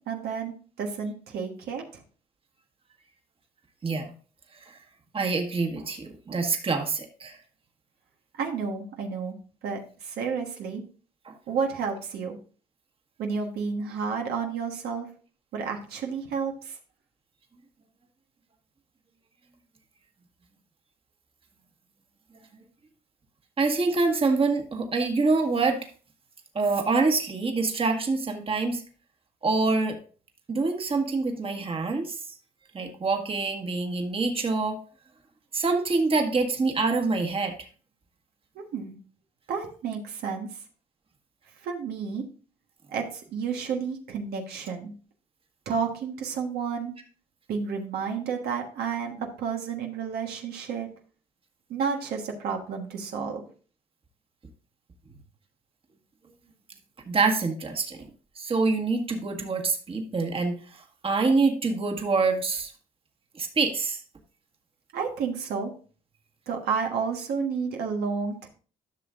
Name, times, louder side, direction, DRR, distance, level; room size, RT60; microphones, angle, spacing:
voice 1, 0.1-2.0 8.4-9.3 9.6-10.8 11.5-12.4 13.2-15.1 15.5-16.8 38.5-39.0 39.5-40.5 41.6-42.2 42.9-44.9 45.6-46.9 47.5-49.1 49.4-50.9 51.7-53.4 64.9-65.7 66.5-68.5, right 6 dB, 80° right, 2 dB, 1.4 m, -31 dB
voice 2, 5.1-7.4 11.2-11.3 23.6-25.8 26.5-28.8 29.4-30.0 30.5-32.2 32.7-34.8 35.5-37.5 57.1-58.1 58.4-62.7 63.3-64.0, right 3 dB, 35° right, 4 dB, 1.6 m, -26 dB
12.0 x 6.3 x 2.5 m, 0.39 s
cardioid pair, 85°, 16 cm